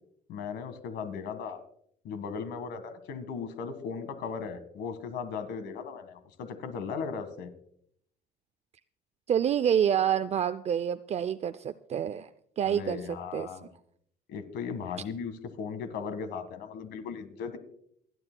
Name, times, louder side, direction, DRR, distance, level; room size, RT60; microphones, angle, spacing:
voice 1, 0.3-1.6 2.0-7.5 12.6-13.7 14.3-17.6, left 6 dB, 80° left, 10 dB, 1.7 m, -37 dB
voice 2, 9.3-12.3 12.6-13.0 13.3-13.5, right 9 dB, 40° right, 11 dB, 0.4 m, -27 dB
28.0 x 9.8 x 2.2 m, 0.68 s
cardioid pair, 110°, 17 cm